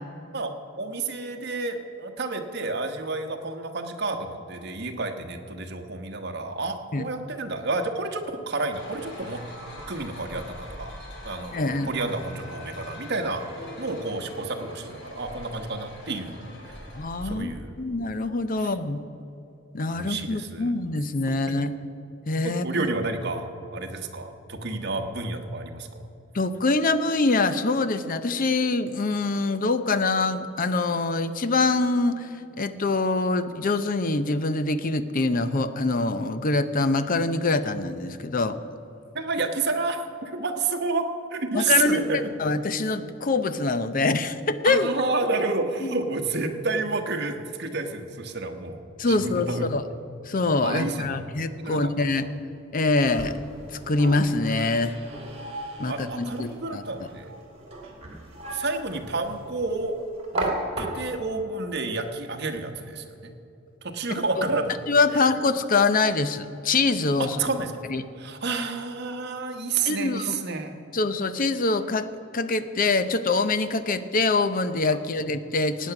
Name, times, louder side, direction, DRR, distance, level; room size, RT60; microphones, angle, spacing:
voice 1, 0.8-9.4 9.9-10.9 11.2-16.4 17.2-17.9 18.6-18.7 19.9-20.7 22.4-25.9 39.1-42.3 44.6-49.7 50.6-51.2 51.6-51.9 55.8-57.4 58.5-60.0 60.3-63.3 63.8-64.7 67.4-67.7 68.2-70.7, right 3 dB, 55° right, 4 dB, 1.2 m, -30 dB
sound 1, 8.7-17.4, left 1 dB, 55° left, 3.1 m, -42 dB
voice 2, 11.5-11.9 17.0-17.5 17.8-19.0 19.7-21.7 22.3-22.6 26.3-32.3 32.6-38.6 41.5-42.1 42.4-44.9 45.8-45.9 49.0-49.8 50.3-52.3 52.7-53.4 53.9-55.0 55.8-56.8 64.9-67.4 67.9-68.0 69.9-70.4 70.9-75.9, left 3 dB, 40° left, 12 dB, 0.6 m, -24 dB
sound 2, 52.8-61.3, right 2 dB, 30° right, 2.5 m, -36 dB
17.0 x 9.2 x 5.9 m, 2.9 s
head